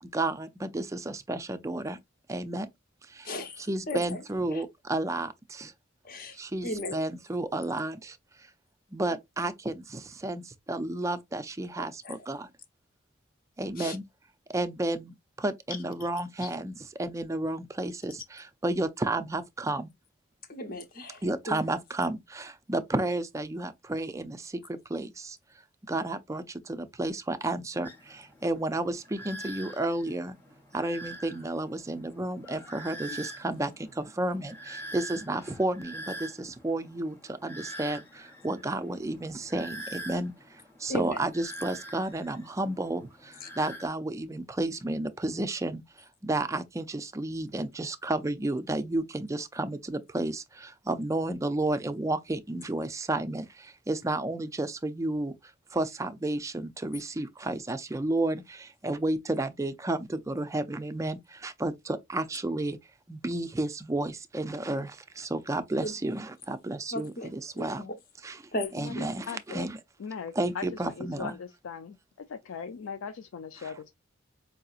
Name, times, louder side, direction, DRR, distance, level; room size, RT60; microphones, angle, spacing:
voice 1, 0.0-2.0 2.3-2.7 3.1-3.3 3.7-5.7 6.3-8.5 8.9-12.5 13.6-14.0 14.5-19.9 21.2-25.4 25.9-30.4 30.7-45.8 46.2-55.3 55.7-62.8 63.1-67.8 68.2-68.4 68.7-69.8 70.4-71.4 73.6-73.7, right 2 dB, 15° right, 0.4 m, -32 dB
voice 2, 3.2-4.2 4.5-4.6 6.0-6.4 6.6-7.0 12.0-12.2 13.8-14.0 16.4-16.5 20.5-21.6 40.9-41.2 43.4-43.5 65.8-66.0 66.9-67.3 67.5-67.9 68.5-69.1, left 1 dB, 45° left, 0.8 m, -36 dB
sound 1, 27.8-43.9, right 1 dB, 10° left, 0.9 m, -45 dB
voice 3, 69.3-69.7 70.0-72.0 72.3-73.9, left 6 dB, 75° left, 0.4 m, -39 dB
4.7 x 2.7 x 2.4 m
head